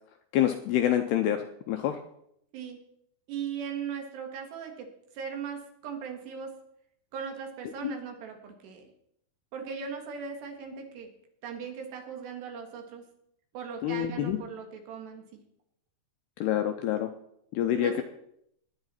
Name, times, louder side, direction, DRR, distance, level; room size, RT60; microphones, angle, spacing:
voice 1, 0.3-2.0 7.8-7.9 13.8-14.4 16.4-17.1 17.5-18.0, left 11 dB, 85° left, 7 dB, 2.4 m, -27 dB
voice 2, 3.3-4.9 5.1-6.5 7.1-8.8 9.5-11.1 11.4-13.0 13.5-15.4 17.7-18.0, right 6 dB, 70° right, 4 dB, 3.6 m, -38 dB
19.5 x 9.8 x 4.3 m, 0.74 s
omnidirectional pair, 5.4 m